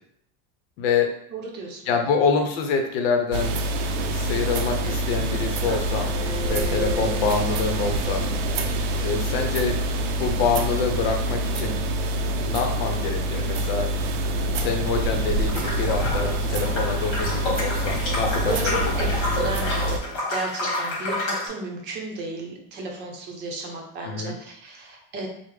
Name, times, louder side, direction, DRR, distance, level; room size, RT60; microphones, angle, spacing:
voice 1, 0.8-1.1 1.9-3.5 4.1-6.1 6.4-8.2 9.0-9.7 10.2-11.8 12.4-13.9 14.5-19.1 24.0-24.3, left 5 dB, 75° left, 4 dB, 0.7 m, -26 dB
voice 2, 1.3-1.9 14.4-14.7 18.4-19.1 19.3-25.3, right 3 dB, 35° right, 0 dB, 0.7 m, -34 dB
sound 1, 3.3-20.0, right 1 dB, 85° right, 0.5 m, -26 dB
Bowed string instrument, 6.0-11.9, left 3 dB, 20° left, 1.0 m, -39 dB
sound 2, 15.5-21.5, left 2 dB, 50° left, 1.1 m, -29 dB
3.5 x 2.0 x 3.2 m, 0.72 s
cardioid pair, 155°, 30 cm